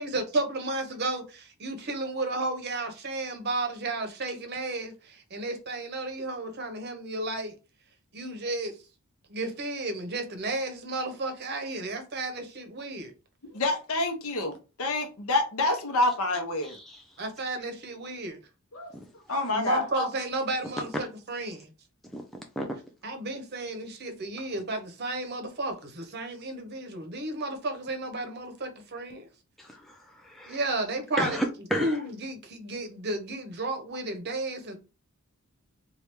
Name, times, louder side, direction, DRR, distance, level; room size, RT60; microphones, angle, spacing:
voice 1, 0.0-7.6 8.1-8.7 9.3-13.1 17.2-18.4 19.5-21.7 23.0-29.3 30.5-31.4 31.8-34.8, right 2 dB, 50° right, 0.7 m, -33 dB
voice 2, 13.5-16.8 18.7-18.9 19.3-20.1, left 2 dB, 70° left, 0.8 m, -27 dB
voice 3, 16.6-17.0 18.9-19.0 20.8-20.9 22.1-22.2 22.6-22.7 29.6-30.6 31.2-32.0, equal, ahead, 0.3 m, -32 dB
3.2 x 2.3 x 2.9 m
head